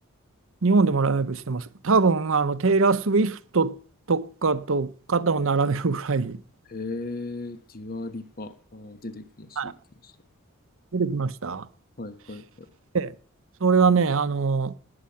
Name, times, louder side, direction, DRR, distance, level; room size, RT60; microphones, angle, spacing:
voice 1, 0.6-3.8 4.1-6.4 9.6-9.7 10.9-11.7 12.9-13.1 13.6-14.7, right 4 dB, 60° right, 0.8 m, -23 dB
voice 2, 6.7-9.8 10.0-10.1 12.0-12.7, left 2 dB, 40° left, 1.2 m, -37 dB
19.0 x 8.8 x 5.7 m
head